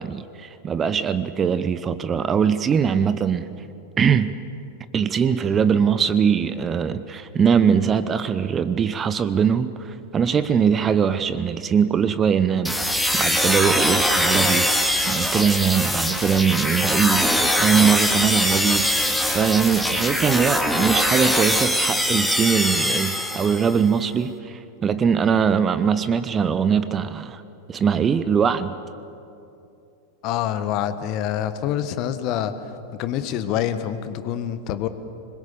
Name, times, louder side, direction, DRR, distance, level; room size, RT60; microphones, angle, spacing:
voice 1, 0.0-3.5 4.0-4.4 4.9-14.7 15.1-18.9 19.3-27.4 27.7-28.8, right 7 dB, 20° right, 14 dB, 0.8 m, -21 dB
sound 1, 12.6-23.8, equal, ahead, 2.0 m, -22 dB
voice 2, 30.2-32.5 32.9-34.9, left 10 dB, 40° left, 11 dB, 1.3 m, -26 dB
26.0 x 21.5 x 7.1 m, 2.7 s
figure-of-eight pair, 90°, 0 cm